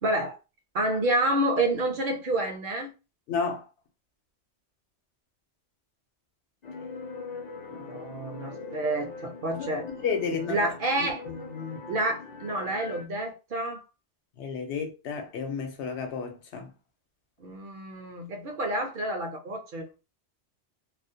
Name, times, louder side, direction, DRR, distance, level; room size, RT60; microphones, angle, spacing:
voice 1, 0.0-0.4 0.7-2.9 7.7-9.9 10.5-11.2 11.9-13.8 17.4-20.0, right 1 dB, 60° right, 0.6 m, -29 dB
voice 2, 3.3-3.7 9.6-10.7 11.0-11.8 14.4-16.7, left 5 dB, 80° left, 0.9 m, -32 dB
sound 1, 6.6-13.1, left 4 dB, 55° left, 0.5 m, -42 dB
2.4 x 2.0 x 2.6 m
omnidirectional pair, 1.2 m